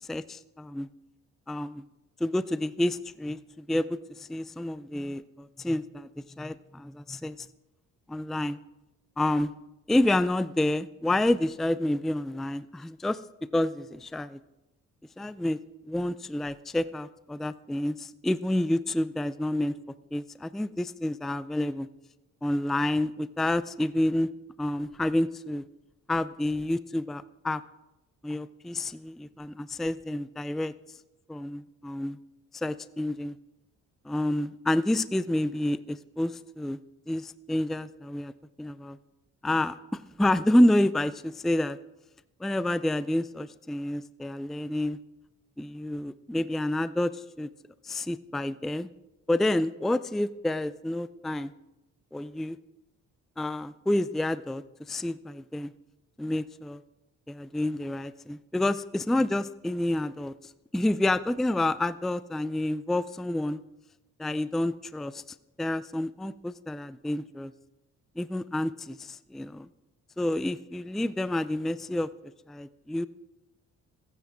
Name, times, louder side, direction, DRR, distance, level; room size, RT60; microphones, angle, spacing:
voice 1, 0.1-0.9 1.5-1.8 2.2-7.5 8.1-8.6 9.2-9.5 9.9-13.2 13.5-14.4 15.2-15.6 15.9-19.7 20.1-21.9 22.4-24.3 24.6-25.6 26.1-27.6 28.2-30.7 31.3-32.2 32.5-33.4 34.1-36.8 37.1-38.3 38.6-39.0 39.4-41.8 42.4-45.0 45.6-47.5 47.8-48.9 49.3-51.5 52.1-52.6 53.4-54.6 54.9-55.7 56.2-56.8 57.3-60.3 60.7-63.6 64.2-65.2 65.6-67.5 68.2-69.7 70.2-72.1 72.5-73.1, left 1 dB, ahead, 15 dB, 0.4 m, -29 dB
29.0 x 9.7 x 3.6 m, 0.98 s
cardioid pair, 90°, 30 cm